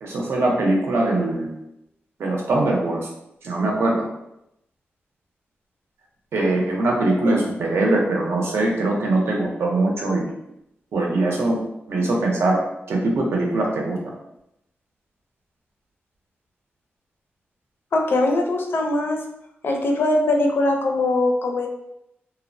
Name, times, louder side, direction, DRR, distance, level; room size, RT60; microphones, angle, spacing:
voice 1, 0.0-1.6 2.2-3.0 3.4-4.1 6.3-10.3 10.9-11.6 11.9-12.6 12.9-14.0, right 2 dB, 80° right, -1 dB, 0.6 m, -22 dB
voice 2, 17.9-19.2 19.6-21.7, left 2 dB, 60° left, 2 dB, 0.4 m, -21 dB
2.7 x 2.0 x 2.5 m, 0.81 s
wide cardioid pair, 145°, 4 cm